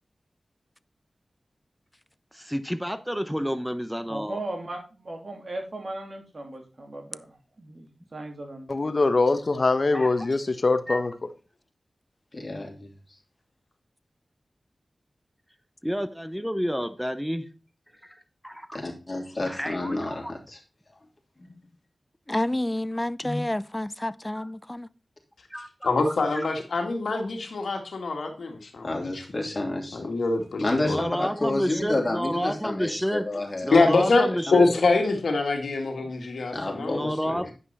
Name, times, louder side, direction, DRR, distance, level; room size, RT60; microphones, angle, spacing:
voice 1, 2.3-4.4 9.9-10.3 10.9-11.1 15.8-17.5 18.0-18.8 19.5-20.3 24.4-24.5 25.5-26.6 30.9-33.3 33.6-34.7 36.0-36.1 36.7-37.5, equal, ahead, 0.9 m, -30 dB
voice 2, 4.1-8.9, right 2 dB, 55° right, 3.0 m, -37 dB
voice 3, 8.7-11.1, left 3 dB, 55° left, 1.0 m, -23 dB
voice 4, 12.3-12.9 18.7-20.6 20.9-21.0 21.4-21.5 23.2-23.4 28.8-30.1 30.6-33.9 34.5-34.8 36.5-37.1, left 2 dB, 40° left, 3.0 m, -30 dB
voice 5, 22.3-24.9, left 1 dB, 20° left, 0.4 m, -29 dB
voice 6, 25.8-29.2 29.9-31.0 33.7-37.4, left 3 dB, 85° left, 1.7 m, -24 dB
9.6 x 5.5 x 4.2 m
cardioid pair, 45°, 0 cm